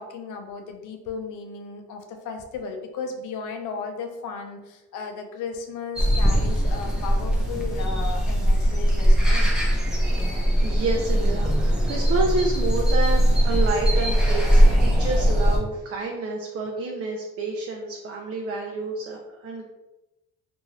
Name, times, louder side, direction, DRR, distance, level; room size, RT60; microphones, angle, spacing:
voice 1, 0.0-9.5, left 5 dB, 80° left, 5 dB, 0.5 m, -35 dB
sound 1, 6.0-15.6, equal, ahead, 0.7 m, -20 dB
voice 2, 10.6-19.7, right 3 dB, 50° right, 0 dB, 0.5 m, -29 dB
2.5 x 2.3 x 3.1 m, 1.0 s
cardioid pair, 90°, 30 cm